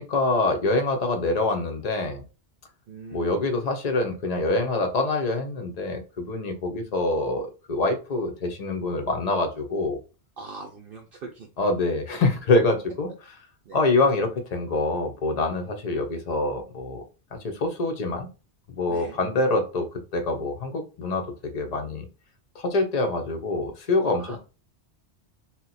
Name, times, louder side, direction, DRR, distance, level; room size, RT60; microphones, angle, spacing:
voice 1, 0.0-2.2 3.1-10.0 11.6-13.1 13.7-17.0 17.4-18.3 18.8-19.9 20.1-21.3 21.5-22.1 22.6-24.4, left 2 dB, 45° left, 6 dB, 0.6 m, -25 dB
voice 2, 2.9-3.5 10.4-11.5 13.6-13.8 18.9-19.2 24.2-24.4, right 4 dB, 60° right, 1 dB, 0.7 m, -41 dB
2.8 x 2.1 x 4.0 m, 0.32 s
omnidirectional pair, 1.2 m